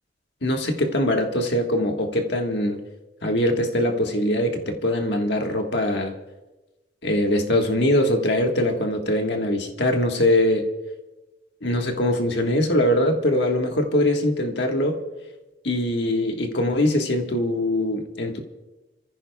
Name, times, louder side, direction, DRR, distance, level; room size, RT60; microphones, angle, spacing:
voice 1, 0.4-2.8 3.2-6.1 7.0-10.7 11.6-15.0 15.6-18.4, left 1 dB, 65° left, 1.5 m, -22 dB
30.0 x 15.0 x 2.3 m
head